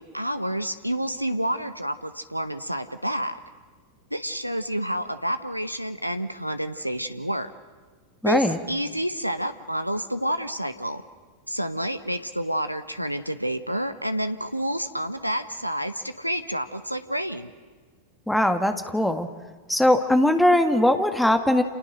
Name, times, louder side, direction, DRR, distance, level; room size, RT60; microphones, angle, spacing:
voice 1, 0.0-3.4 4.1-7.5 8.3-11.0 11.5-17.5, equal, 90° right, 10 dB, 1.0 m, -29 dB
voice 2, 8.2-8.6 18.3-19.3 19.7-21.6, left 1 dB, 5° left, 7 dB, 2.0 m, -20 dB
29.0 x 29.0 x 6.6 m, 1.4 s
figure-of-eight pair, 90°, 0 cm